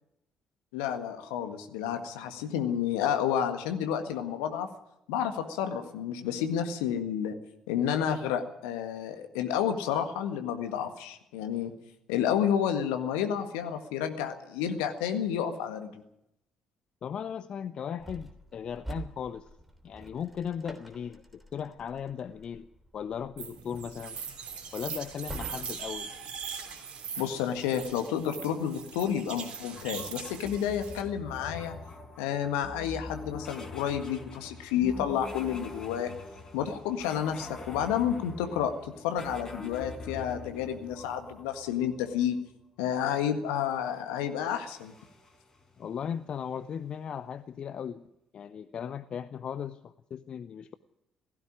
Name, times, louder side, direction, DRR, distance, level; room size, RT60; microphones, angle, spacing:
voice 1, 0.7-4.7 5.1-7.3 7.7-11.7 12.1-15.9 27.2-31.7 32.2-36.1 36.5-38.7 39.0-42.3 42.8-44.9, left 9 dB, 70° left, 7 dB, 1.7 m, -30 dB
voice 2, 17.0-19.5 19.8-22.7 22.9-24.2 24.7-26.1 45.8-48.0 48.3-50.7, left 8 dB, 45° left, 14 dB, 0.7 m, -37 dB
sound 1, 18.0-26.1, right 2 dB, 5° right, 3.2 m, -47 dB
sound 2, 23.4-31.0, right 6 dB, 55° right, 3.4 m, -41 dB
sound 3, 29.8-42.3 44.3-46.0, left 2 dB, 30° left, 4.5 m, -44 dB
17.0 x 15.5 x 9.9 m, 0.84 s
figure-of-eight pair, 45°, 2 cm